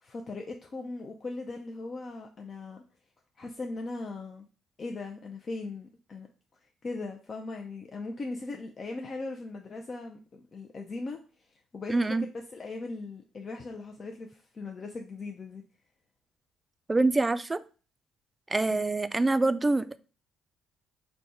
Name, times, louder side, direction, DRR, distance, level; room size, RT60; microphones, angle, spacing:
voice 1, 0.0-2.8 3.4-4.5 4.8-6.3 6.8-11.2 11.7-15.6 18.7-18.8, left 3 dB, 45° left, 0.5 m, -39 dB
voice 2, 11.9-12.2 16.9-17.6 18.5-20.0, right 2 dB, 20° right, 0.3 m, -25 dB
3.4 x 2.2 x 4.0 m
hypercardioid pair, 55°, 0 cm